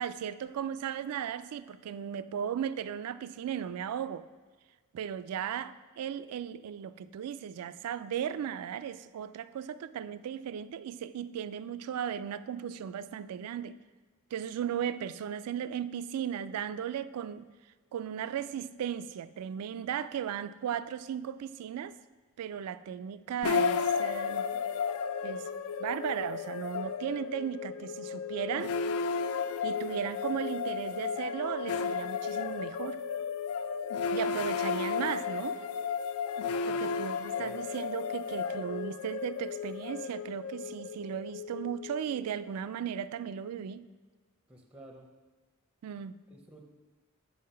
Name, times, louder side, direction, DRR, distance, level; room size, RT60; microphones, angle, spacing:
voice 1, 0.0-4.3 4.9-13.8 14.3-17.5 17.9-22.0 22.4-24.6 25.2-25.5 25.8-28.8 29.6-33.0 34.1-35.6 36.7-43.9 45.8-46.2, right 8 dB, 90° right, 14 dB, 0.3 m, -36 dB
sound 1, 23.4-42.5, left 6 dB, 70° left, 0.3 m, -34 dB
voice 2, 36.4-36.9 37.4-37.6 44.5-45.1 46.3-46.6, right 1 dB, 5° right, 2 dB, 0.6 m, -52 dB
5.7 x 5.4 x 5.5 m, 1.3 s
head